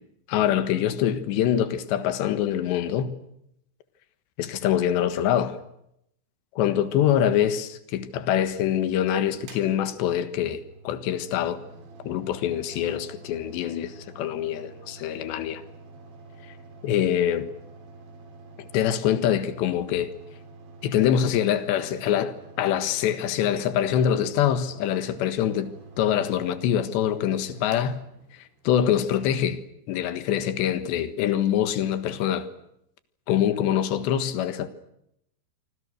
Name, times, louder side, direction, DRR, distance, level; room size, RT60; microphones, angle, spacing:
voice 1, 0.3-3.2 4.4-5.6 6.6-11.6 12.1-15.6 16.8-17.5 18.6-20.1 20.8-28.0 28.7-29.6 29.9-32.5 33.3-34.7, left 10 dB, 75° left, 3.6 m, -24 dB
Mechanical fan, 9.4-28.8, right 3 dB, 75° right, 5.9 m, -47 dB
28.0 x 25.5 x 6.5 m
omnidirectional pair, 5.3 m